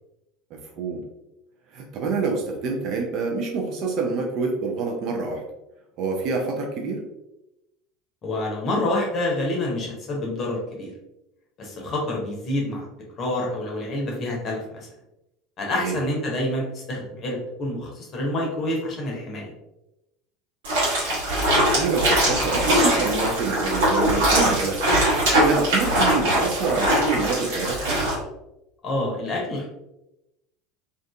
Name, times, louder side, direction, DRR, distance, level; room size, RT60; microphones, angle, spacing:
voice 1, 0.5-1.1 1.7-5.4 6.0-7.0 15.7-16.0 21.4-27.8, right 4 dB, 50° right, 1 dB, 0.5 m, -27 dB
voice 2, 8.2-10.9 11.6-12.9 13.2-14.9 15.6-19.5 28.8-29.7, left 1 dB, 40° left, -1 dB, 0.8 m, -27 dB
sound 1, 20.6-28.1, right 1 dB, 65° right, 1.0 m, -21 dB
2.5 x 2.5 x 2.3 m, 0.90 s
figure-of-eight pair, 70°, 0 cm